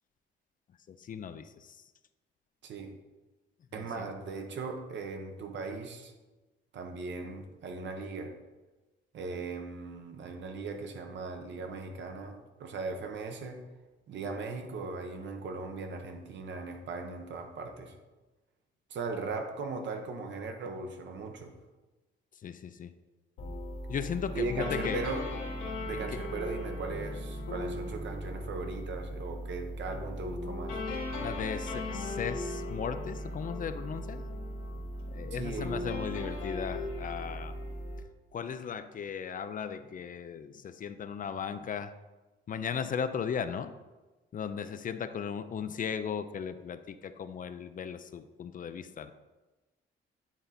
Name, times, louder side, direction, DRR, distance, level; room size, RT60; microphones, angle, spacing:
voice 1, 0.9-1.8 3.7-4.1 22.4-22.9 23.9-25.0 31.2-34.2 35.1-37.5 38.3-41.9 42.5-43.7 44.3-49.1, left 7 dB, 45° left, 11 dB, 0.5 m, -37 dB
voice 2, 2.6-3.0 3.7-6.1 6.7-8.4 9.1-13.6 14.1-17.9 18.9-21.5 24.3-25.3 25.9-30.8 35.3-35.7, right 3 dB, 65° right, 5 dB, 1.0 m, -38 dB
sound 1, 23.4-38.0, left 1 dB, 90° left, 1.6 m, -37 dB
8.9 x 3.8 x 4.2 m, 1.2 s
cardioid pair, 90°, 20 cm